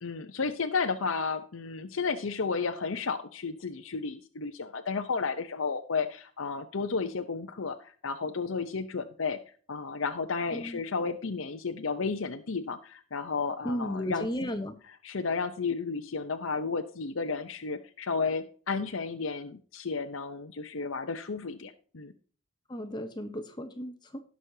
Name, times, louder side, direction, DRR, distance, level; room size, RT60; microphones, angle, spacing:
voice 1, 0.0-9.4 9.7-14.3 15.0-22.1, left 4 dB, 75° left, 7 dB, 0.8 m, -32 dB
voice 2, 13.6-14.7 22.7-24.2, equal, 20° left, 8 dB, 0.8 m, -34 dB
18.0 x 6.3 x 2.8 m, 0.43 s
head